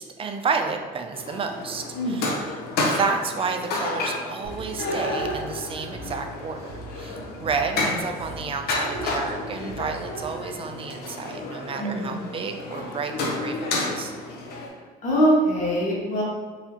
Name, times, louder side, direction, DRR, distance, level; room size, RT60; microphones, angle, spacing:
voice 1, 0.0-2.5 2.8-14.1, right 5 dB, 35° right, 5 dB, 0.4 m, -31 dB
sound 1, 1.1-14.7, left 2 dB, 70° left, 0.8 m, -31 dB
voice 2, 1.9-2.3 7.1-7.4 11.8-12.3 15.0-16.2, equal, 50° left, -5 dB, 1.0 m, -24 dB
sound 2, 4.4-11.1, right 2 dB, 85° right, 0.7 m, -43 dB
4.0 x 2.7 x 2.9 m, 1.4 s
cardioid pair, 110°, 17 cm